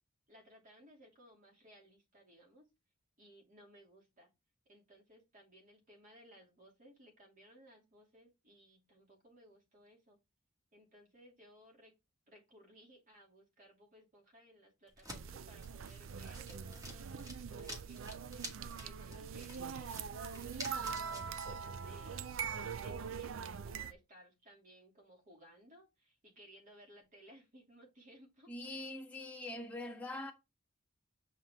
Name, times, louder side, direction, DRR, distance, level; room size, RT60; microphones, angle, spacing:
voice 1, 0.3-2.7 3.2-4.3 4.7-10.2 10.7-11.9 12.3-18.3 18.8-22.3 22.8-28.5, equal, 40° right, 2.7 m, -61 dB
sound 1, 14.9-21.5, equal, 20° right, 1.8 m, -50 dB
sound 2, 15.1-23.9, right 6 dB, 70° right, 0.5 m, -43 dB
voice 2, 28.5-30.3, left 2 dB, 5° left, 1.5 m, -43 dB
7.5 x 4.6 x 3.6 m
head